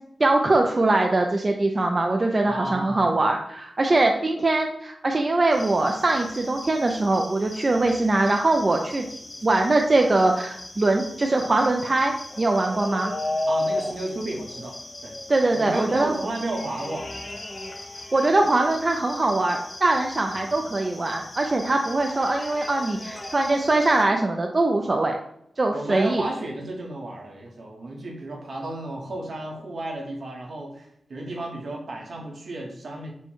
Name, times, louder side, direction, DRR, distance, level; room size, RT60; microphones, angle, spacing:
voice 1, 0.2-9.1 9.4-13.1 15.3-16.1 18.1-25.2 25.6-26.2, right 2 dB, 30° right, 2 dB, 0.3 m, -22 dB
voice 2, 2.4-3.1 13.5-15.1 15.5-17.1 20.3-20.6 25.7-33.1, right 1 dB, 65° right, 0 dB, 1.0 m, -33 dB
sound 1, 5.5-24.0, left 1 dB, 30° left, 0.5 m, -36 dB
4.4 x 2.2 x 4.4 m, 0.77 s
wide cardioid pair, 145°, 0 cm